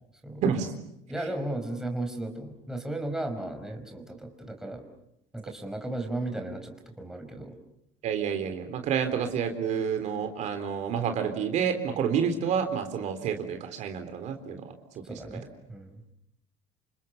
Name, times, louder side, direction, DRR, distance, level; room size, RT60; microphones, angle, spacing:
voice 1, 0.4-0.7 8.0-15.0, right 7 dB, 55° right, 7 dB, 3.7 m, -29 dB
voice 2, 1.1-4.8 5.3-7.5 15.0-16.0, right 2 dB, 5° right, 4 dB, 5.0 m, -35 dB
29.0 x 27.0 x 6.8 m, 0.78 s
cardioid pair, 120°, 14 cm